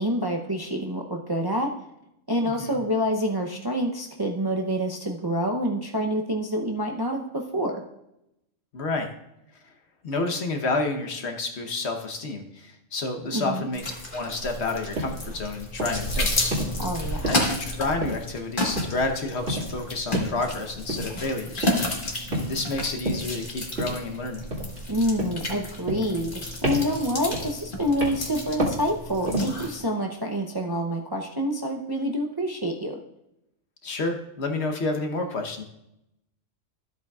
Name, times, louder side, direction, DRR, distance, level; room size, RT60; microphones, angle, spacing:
voice 1, 0.0-1.7 2.3-7.8 13.3-13.7 16.8-17.4 24.9-32.9, equal, 25° right, 1 dB, 0.5 m, -27 dB
voice 2, 2.4-2.8 8.7-9.1 10.0-13.8 14.1-16.5 17.2-22.0 22.3-24.5 33.8-35.6, left 3 dB, 60° left, 5 dB, 1.3 m, -30 dB
sound 1, 13.7-29.8, left 1 dB, 40° left, 1.7 m, -32 dB
sound 2, 15.0-15.2 15.8-16.1 16.5-16.8 17.2-17.7 18.0-18.4 18.8-19.1 19.5-19.8 20.1-20.4 20.9-21.2 21.6-21.9 22.3-22.7 23.1-23.3 23.8-24.1 24.5-24.9 25.2-25.5 25.9-26.4 26.6-27.0 27.3-27.6 28.0-28.3 28.6-28.9 29.3-29.6, right 1 dB, 55° right, 2.3 m, -30 dB
13.0 x 8.1 x 2.4 m, 0.83 s
omnidirectional pair, 1.3 m